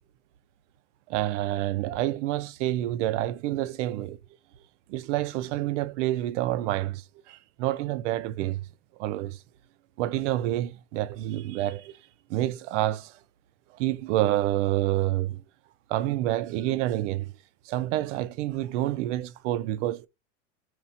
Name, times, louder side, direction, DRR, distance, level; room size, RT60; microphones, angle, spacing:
voice 1, 1.1-4.2 4.9-7.0 7.3-8.6 9.0-9.4 10.0-11.9 12.3-13.1 13.8-15.4 15.9-17.3 17.7-20.1, right 14 dB, 70° right, 0.5 m, -28 dB
4.3 x 2.4 x 2.5 m
supercardioid pair, 120°, 38 cm